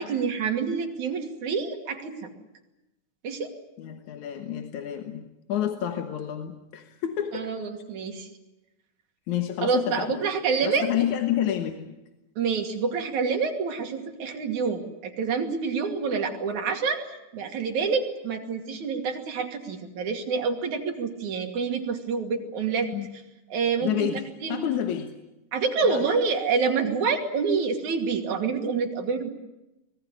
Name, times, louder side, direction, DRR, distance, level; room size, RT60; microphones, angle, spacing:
voice 1, 0.0-2.3 3.2-3.5 7.3-8.3 9.6-10.9 12.4-17.0 17.3-22.9 23.5-24.6 25.5-29.3, right 5 dB, 65° right, 3 dB, 3.9 m, -27 dB
voice 2, 3.8-7.5 9.3-10.2 10.6-11.9 22.9-23.1 23.8-25.2 25.8-26.1, left 10 dB, 70° left, 6 dB, 2.6 m, -29 dB
24.5 x 20.5 x 9.9 m, 0.95 s
omnidirectional pair, 3.6 m